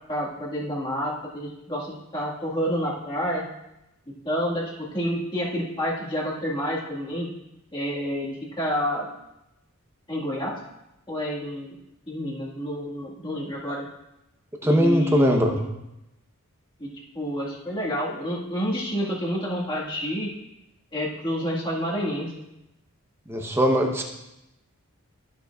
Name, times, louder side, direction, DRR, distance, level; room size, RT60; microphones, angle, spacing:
voice 1, 0.1-3.4 4.1-7.3 7.7-9.1 10.1-10.5 11.1-11.7 12.1-13.8 14.6-15.6 16.8-16.9 17.1-20.3 20.9-22.3, equal, 20° left, -5 dB, 1.6 m, -29 dB
voice 2, 14.6-15.6 23.3-24.0, equal, 10° right, 3 dB, 0.7 m, -20 dB
13.0 x 6.4 x 2.3 m, 0.91 s
head